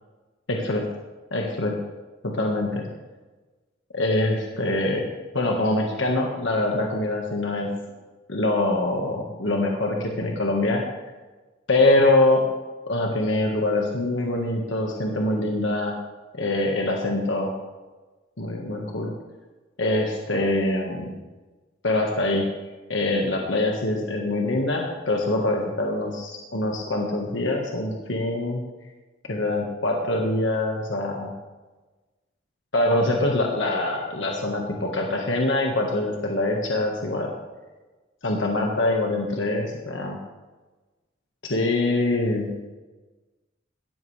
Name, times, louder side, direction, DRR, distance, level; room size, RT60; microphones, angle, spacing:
voice 1, 0.5-0.9 1.3-1.8 2.2-2.9 3.9-5.1 5.3-7.7 8.3-10.8 11.7-12.5 12.9-15.9 16.3-17.5 18.4-19.1 19.8-21.2 21.8-22.5 22.9-28.6 29.3-31.3 32.7-37.3 38.2-40.2 41.4-42.5, left 2 dB, 65° left, 0 dB, 1.6 m, -24 dB
17.0 x 13.5 x 3.4 m, 1.2 s
head